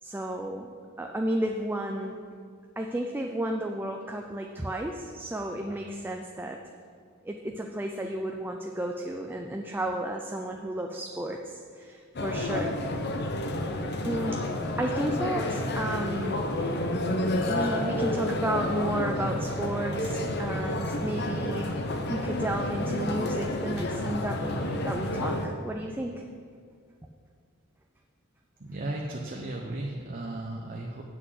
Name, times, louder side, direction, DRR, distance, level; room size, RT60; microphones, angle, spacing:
voice 1, 0.0-2.2 2.8-6.6 7.2-12.7 13.0-13.1 14.0-14.4 14.8-16.7 17.5-26.1, right 1 dB, 10° right, 2 dB, 0.4 m, -33 dB
sound 1, 12.2-25.5, left 1 dB, 55° left, 0.8 m, -30 dB
voice 2, 28.6-31.0, right 2 dB, 45° right, 0 dB, 0.8 m, -35 dB
7.9 x 6.2 x 7.7 m, 2.2 s
head